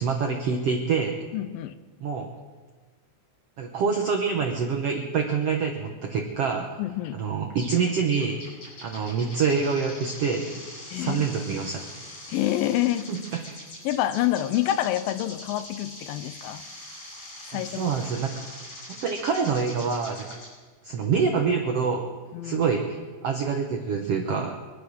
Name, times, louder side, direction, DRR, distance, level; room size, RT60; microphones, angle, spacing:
voice 1, 0.0-1.2 2.0-2.3 3.6-6.7 7.1-8.5 8.8-10.6 10.9-11.9 13.1-13.2 17.5-18.4 19.0-20.3 20.8-22.1 22.4-24.6, right 5 dB, 75° right, 3 dB, 1.4 m, -26 dB
voice 2, 1.3-1.8 6.8-7.2 10.9-11.3 12.3-13.1 13.8-16.6 17.5-17.9 22.3-22.7, left 13 dB, 80° left, 13 dB, 2.3 m, -27 dB
sound 1, 7.6-7.8 8.1-20.5, left 1 dB, 40° left, 6.9 m, -42 dB
25.0 x 8.4 x 6.2 m, 1.4 s
omnidirectional pair, 4.2 m